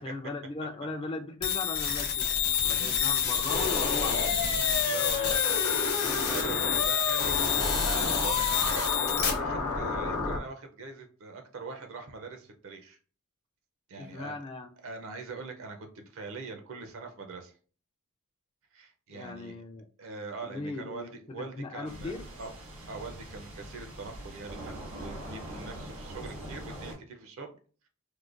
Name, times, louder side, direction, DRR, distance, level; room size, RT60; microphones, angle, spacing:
voice 1, 0.0-2.3 2.6-4.4 6.0-6.6 9.6-9.8 14.0-14.7 19.1-19.9 20.4-22.3 24.0-24.2, left 3 dB, 25° left, 0.3 m, -38 dB
sound 1, 1.4-9.3, left 8 dB, 50° left, 0.8 m, -28 dB
sound 2, 3.5-10.4, left 3 dB, 90° left, 0.7 m, -31 dB
voice 2, 4.8-5.5 6.0-8.9 9.3-13.0 13.9-14.4 14.8-17.5 18.7-19.6 20.0-22.5 22.9-24.7 25.0-27.5, right 4 dB, 65° right, 0.5 m, -42 dB
sound 3, 21.8-27.0, right 1 dB, 85° right, 1.3 m, -42 dB
4.6 x 2.1 x 2.4 m
head